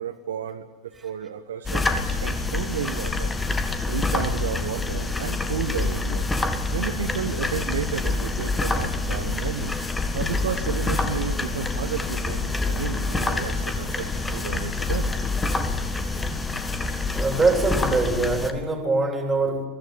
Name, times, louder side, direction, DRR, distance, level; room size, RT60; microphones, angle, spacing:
voice 1, 0.0-3.3 3.9-6.3 6.7-9.7 10.1-15.1, right 8 dB, 60° right, 1.0 m, -32 dB
sound 1, 1.7-18.5, left 3 dB, 10° left, 1.7 m, -26 dB
voice 2, 16.9-19.7, right 3 dB, 15° right, 3.7 m, -23 dB
23.0 x 15.0 x 8.2 m
figure-of-eight pair, 90°, 0 cm